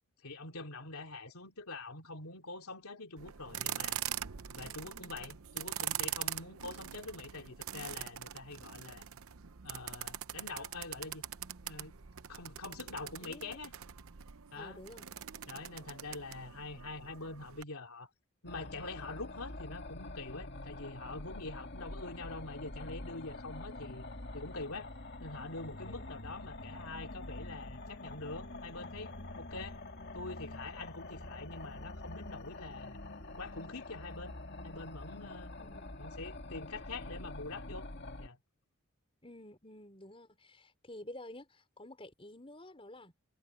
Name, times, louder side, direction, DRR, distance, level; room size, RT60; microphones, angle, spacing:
voice 1, 0.2-4.0 4.5-9.0 9.6-11.2 11.6-12.0 12.3-13.7 14.5-14.8 15.4-18.1 18.4-24.1 24.3-24.9 25.2-29.8 30.1-33.0 33.4-34.4 34.6-35.5 36.0-37.9 38.2-38.4, left 3 dB, 85° left, 3.1 m, -45 dB
sound 1, 3.2-17.6, right 11 dB, 75° right, 0.8 m, -43 dB
voice 2, 13.2-13.6 14.5-15.1 23.7-23.9 25.8-26.1 29.5-29.7 35.5-35.9 39.2-43.1, left 1 dB, 25° left, 4.9 m, -51 dB
sound 2, 18.4-38.3, left 2 dB, 50° left, 2.2 m, -46 dB
head